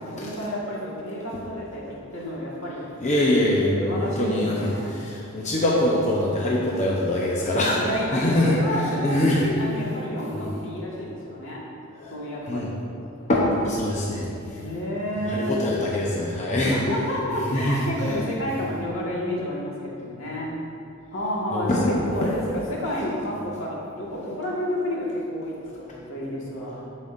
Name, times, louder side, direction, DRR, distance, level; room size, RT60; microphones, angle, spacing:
voice 1, 0.0-2.8 3.8-5.0 7.5-11.6 12.1-12.8 14.5-15.7 16.7-20.5 21.1-26.8, equal, 80° left, -5 dB, 1.9 m, -30 dB
voice 2, 3.0-7.8 8.1-8.6 9.0-9.4 10.3-10.4 12.0-12.1 12.5-12.7 13.3-14.3 15.3-16.8 17.5-17.8 21.5-22.0, left 1 dB, 35° left, -4 dB, 0.8 m, -23 dB
13.5 x 5.3 x 2.6 m, 2.5 s
head